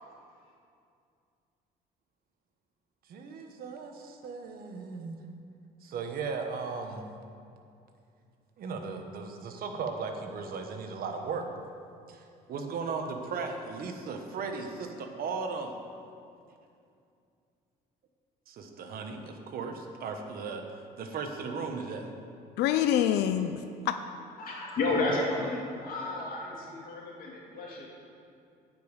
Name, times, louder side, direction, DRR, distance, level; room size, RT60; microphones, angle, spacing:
voice 1, 3.1-5.2 5.8-7.1 8.6-11.4 12.1-15.7 18.5-20.6 21.0-22.1, right 4 dB, 60° right, 5 dB, 1.2 m, -36 dB
voice 2, 22.6-24.0, left 10 dB, 80° left, 9 dB, 0.4 m, -26 dB
voice 3, 24.4-27.9, left 2 dB, 60° left, -2 dB, 2.6 m, -32 dB
9.6 x 5.4 x 8.1 m, 2.5 s
cardioid pair, 110°, 17 cm